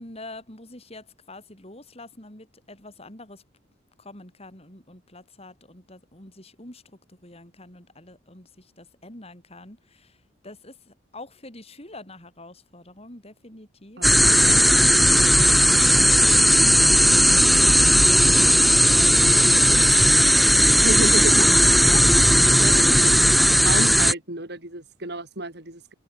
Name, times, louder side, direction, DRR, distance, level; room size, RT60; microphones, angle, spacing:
voice 1, 0.0-3.4 4.0-10.2 10.4-17.5 18.0-20.6 21.4-22.6, left 2 dB, 30° left, 5.2 m, -44 dB
sound 1, 14.0-24.1, equal, ahead, 0.7 m, -16 dB
voice 2, 14.0-14.4 20.6-21.4 22.5-23.1 23.6-25.9, right 1 dB, 55° right, 5.2 m, -31 dB
head